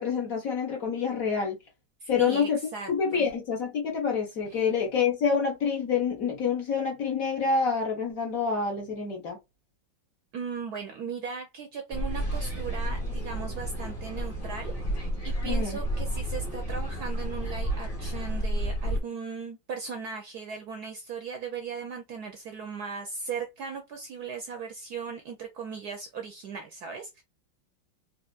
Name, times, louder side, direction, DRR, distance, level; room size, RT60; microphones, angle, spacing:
voice 1, 0.0-1.6 2.1-2.6 2.9-9.4 15.4-15.8, left 6 dB, 45° left, 1.4 m, -27 dB
voice 2, 2.0-3.3 4.5-4.6 10.3-14.7 15.2-27.2, right 5 dB, 65° right, 1.0 m, -38 dB
sound 1, 11.9-19.0, right 1 dB, 20° left, 1.1 m, -31 dB
4.8 x 2.8 x 2.4 m
omnidirectional pair, 2.2 m